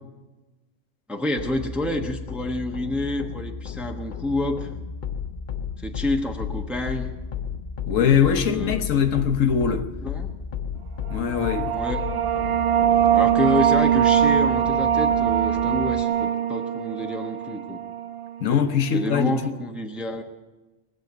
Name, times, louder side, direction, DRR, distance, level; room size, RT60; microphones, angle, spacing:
voice 1, 1.1-4.7 5.8-7.1 8.0-8.9 10.0-10.3 11.7-12.0 13.1-17.8 18.9-20.2, left 1 dB, ahead, 1.0 m, -28 dB
sound 1, 1.4-16.0, left 6 dB, 45° left, 0.8 m, -33 dB
voice 2, 7.9-9.9 11.1-11.7 18.4-19.6, left 7 dB, 80° left, 1.3 m, -22 dB
sound 2, 11.1-18.4, right 10 dB, 50° right, 1.2 m, -22 dB
20.0 x 7.5 x 9.4 m
omnidirectional pair, 1.3 m